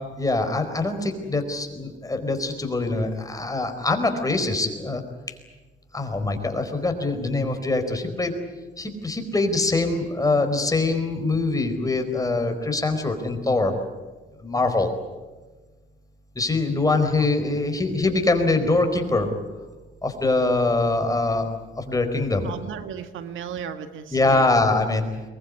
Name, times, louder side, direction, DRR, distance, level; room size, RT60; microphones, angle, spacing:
voice 1, 0.0-5.0 5.3-5.4 5.9-8.3 8.8-13.8 14.4-14.9 16.3-19.3 20.0-22.5 24.1-25.0, left 2 dB, 15° left, 6 dB, 4.5 m, -23 dB
voice 2, 16.9-17.3 22.4-24.4, right 8 dB, 80° right, 9 dB, 1.7 m, -35 dB
23.0 x 20.5 x 9.7 m, 1.3 s
cardioid pair, 90°, 20 cm